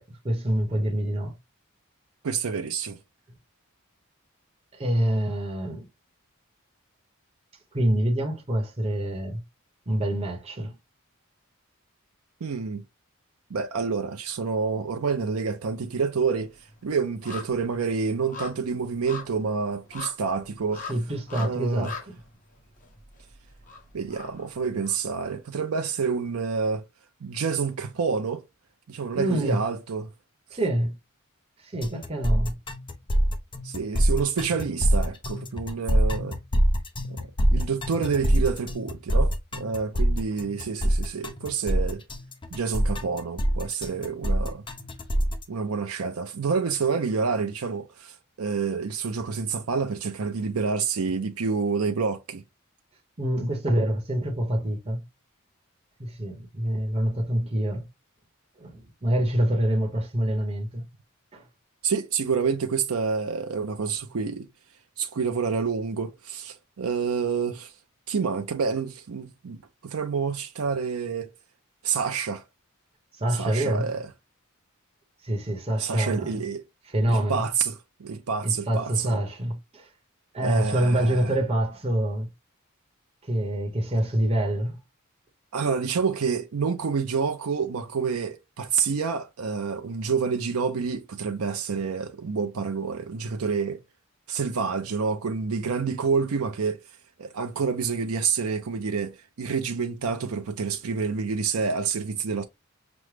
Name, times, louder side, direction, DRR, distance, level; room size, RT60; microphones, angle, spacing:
voice 1, 0.0-1.3 4.7-5.9 7.7-9.4 9.9-10.7 20.9-21.9 29.1-29.6 30.5-31.0 31.6-32.5 53.2-55.0 56.0-57.9 58.6-60.8 61.3-61.4 73.2-73.9 75.2-76.4 76.9-77.4 78.4-79.9 80.3-82.3 83.2-84.8, right 1 dB, 30° right, 0.9 m, -26 dB
voice 2, 2.2-3.0 12.4-12.8 13.5-20.8 21.3-21.9 23.9-26.8 27.2-28.4 28.9-30.1 33.6-36.4 37.1-42.0 42.5-44.6 45.5-52.4 61.8-64.5 65.0-67.7 68.1-71.3 71.8-72.4 73.3-74.1 75.8-76.6 77.1-79.1 80.4-81.3 85.5-93.8 94.3-102.4, right 5 dB, 85° right, 0.5 m, -28 dB
sound 1, 14.3-15.1 15.3-25.3 25.7-25.8, left 5 dB, 40° left, 1.1 m, -43 dB
sound 2, 31.8-45.4, equal, 25° left, 0.6 m, -25 dB
6.1 x 2.1 x 3.2 m
head